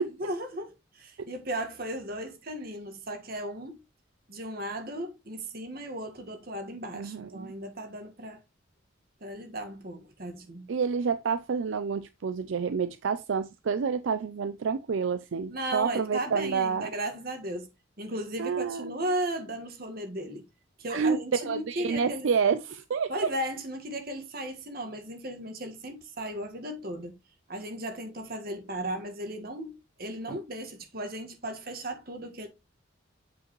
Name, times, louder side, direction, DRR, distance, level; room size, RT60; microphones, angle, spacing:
voice 1, 0.1-3.8 4.3-8.4 9.2-10.7 15.5-17.7 18.0-20.4 20.8-22.3 23.1-27.2 27.5-32.5, right 1 dB, 50° right, 1.7 m, -36 dB
voice 2, 6.9-7.5 10.7-16.9 18.4-18.9 20.9-21.2 21.5-23.1 30.3-30.4, right 6 dB, 75° right, 0.4 m, -29 dB
8.2 x 5.2 x 3.1 m
head